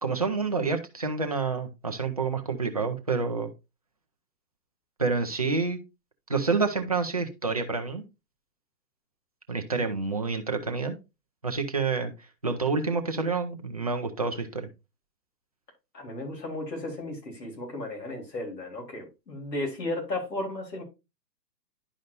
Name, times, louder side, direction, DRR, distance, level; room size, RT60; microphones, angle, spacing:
voice 1, 0.0-3.5 5.0-5.8 6.3-8.0 9.5-11.0 11.4-12.1 12.4-14.7, right 4 dB, 25° right, 0.4 m, -28 dB
voice 2, 15.9-20.8, left 2 dB, 75° left, 3.9 m, -34 dB
11.0 x 5.0 x 2.6 m
hypercardioid pair, 140°, 50 cm